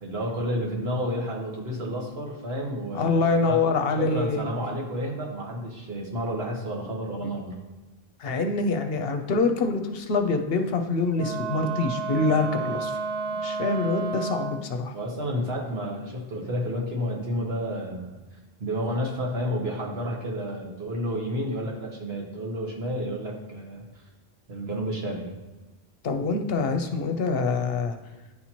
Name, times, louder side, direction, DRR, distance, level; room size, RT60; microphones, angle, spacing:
voice 1, 0.0-3.2 3.5-3.6 4.0-7.6 14.9-18.2 18.6-23.8 24.5-25.4, equal, 75° right, -1 dB, 1.5 m, -30 dB
voice 2, 2.9-4.4 7.2-7.3 8.2-13.0 13.3-15.0 26.0-27.9, left 3 dB, 70° left, 6 dB, 0.8 m, -25 dB
Wind instrument woodwind instrument, 11.1-14.8, right 4 dB, 40° right, 0.6 m, -31 dB
10.0 x 4.3 x 2.9 m, 1.2 s
omnidirectional pair, 1.1 m